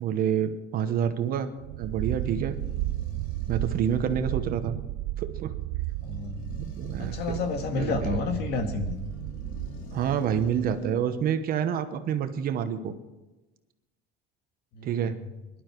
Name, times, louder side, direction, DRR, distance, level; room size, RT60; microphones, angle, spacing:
voice 1, 0.0-1.5 1.8-2.6 3.5-4.8 5.2-5.5 6.6-7.4 7.8-8.1 9.9-12.9 14.8-15.2, right 8 dB, 45° right, 9 dB, 1.1 m, -28 dB
sound 1, 1.6-11.1, left 3 dB, 85° left, 2.8 m, -47 dB
sound 2, 1.6-10.0, right 15 dB, 70° right, 0.7 m, -33 dB
voice 2, 6.0-6.4 7.0-9.0 14.7-15.1, left 3 dB, 55° left, 5 dB, 2.0 m, -30 dB
20.5 x 12.0 x 4.6 m, 1.1 s
cardioid pair, 155°, 20 cm